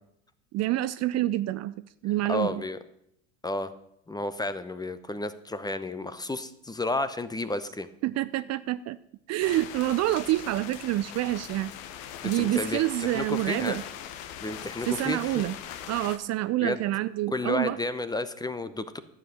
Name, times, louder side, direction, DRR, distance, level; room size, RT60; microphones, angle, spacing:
voice 1, 0.5-2.6 8.0-9.0 9.3-11.7 12.2-13.8 14.8-15.6 15.9-17.8, right 15 dB, 40° right, 14 dB, 0.5 m, -27 dB
voice 2, 2.3-2.8 3.4-3.7 4.1-7.9 12.2-13.8 14.4-15.3 16.6-16.8 17.3-19.0, left 2 dB, 10° left, 13 dB, 0.8 m, -31 dB
sound 1, 9.4-16.2, left 10 dB, 65° left, 1.2 m, -41 dB
11.5 x 7.6 x 6.5 m, 0.76 s
hypercardioid pair, 85°, 40 cm